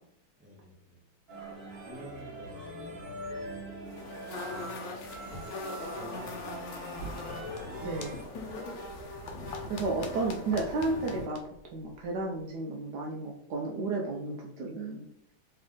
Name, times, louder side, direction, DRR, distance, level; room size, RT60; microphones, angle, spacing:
voice 1, 0.4-1.0 1.8-3.7 4.4-5.1 5.9-6.8, equal, 5° right, -6 dB, 0.7 m, -50 dB
sound 1, 1.3-8.3, right 1 dB, 40° right, 1.0 m, -42 dB
sound 2, 3.9-11.3, left 2 dB, 65° left, 1.4 m, -41 dB
sound 3, 7.3-12.5, left 5 dB, 90° left, 1.5 m, -49 dB
voice 2, 7.8-8.2 9.7-11.4 11.7-15.1, right 3 dB, 75° right, -1 dB, 1.0 m, -32 dB
3.4 x 3.2 x 3.7 m, 0.76 s
omnidirectional pair, 2.2 m